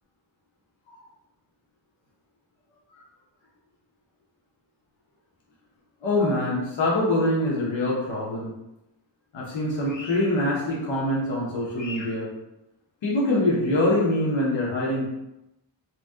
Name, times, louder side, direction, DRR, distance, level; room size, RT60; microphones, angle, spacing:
voice 1, 6.0-8.5 9.3-12.3 13.0-15.0, left 1 dB, 90° left, -4 dB, 1.1 m, -24 dB
3.0 x 2.6 x 3.6 m, 0.90 s
wide cardioid pair, 135°, 44 cm